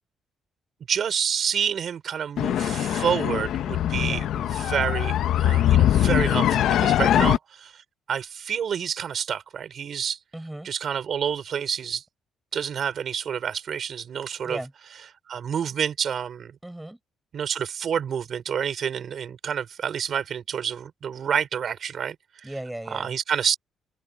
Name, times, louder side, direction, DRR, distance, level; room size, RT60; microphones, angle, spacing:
voice 1, 0.9-4.3 4.5-7.4 8.1-10.2 10.6-12.0 12.5-14.6 15.3-16.5 17.3-22.2 22.9-23.6, right 8 dB, 50° right, 4.5 m, -28 dB
sound 1, 2.4-7.4, left 11 dB, 70° left, 1.0 m, -22 dB
voice 2, 10.3-10.7 14.4-14.7 16.6-17.0 22.4-23.2, right 1 dB, 5° right, 6.8 m, -36 dB
cardioid pair, 120°, 0 cm